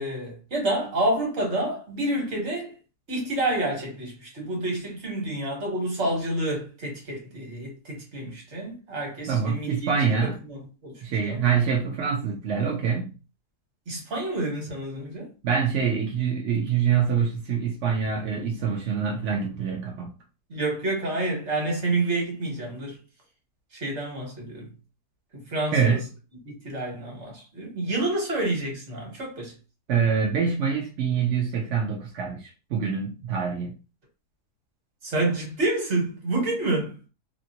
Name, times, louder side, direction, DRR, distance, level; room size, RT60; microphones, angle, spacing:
voice 1, 0.0-2.7 3.1-9.9 10.2-10.9 11.3-11.4 13.9-15.3 20.5-23.0 23.8-24.7 25.3-26.0 26.4-29.5 35.0-37.0, right 2 dB, 45° right, 1.3 m, -28 dB
voice 2, 9.3-10.4 11.0-13.1 15.4-20.1 25.7-26.1 29.9-33.8, right 6 dB, 60° right, 0.7 m, -25 dB
2.9 x 2.6 x 2.8 m
omnidirectional pair, 1.7 m